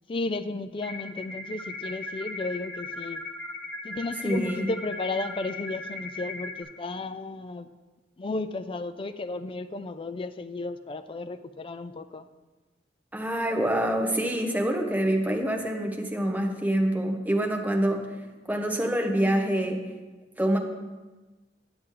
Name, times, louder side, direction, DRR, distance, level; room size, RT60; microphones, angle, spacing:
voice 1, 0.1-3.2 3.8-7.7 8.2-12.3, left 3 dB, 30° left, 10 dB, 0.4 m, -33 dB
sound 1, 0.8-6.6, left 2 dB, 10° left, 1.4 m, -38 dB
voice 2, 4.2-4.7 13.1-18.2 18.5-19.8 20.4-20.6, right 1 dB, 10° right, 2 dB, 0.9 m, -26 dB
9.7 x 7.9 x 3.8 m, 1.2 s
head